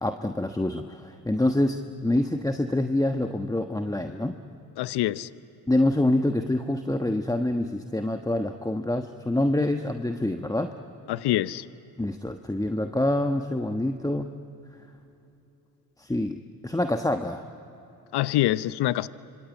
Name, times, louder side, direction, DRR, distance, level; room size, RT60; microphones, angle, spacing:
voice 1, 0.0-4.4 5.7-10.7 12.0-14.3 16.0-17.4, left 1 dB, 10° left, 7 dB, 1.2 m, -26 dB
voice 2, 4.8-5.3 11.1-11.6 18.1-19.1, left 15 dB, 65° left, 17 dB, 0.8 m, -25 dB
26.0 x 25.0 x 8.5 m, 2.9 s
hypercardioid pair, 45°, 43 cm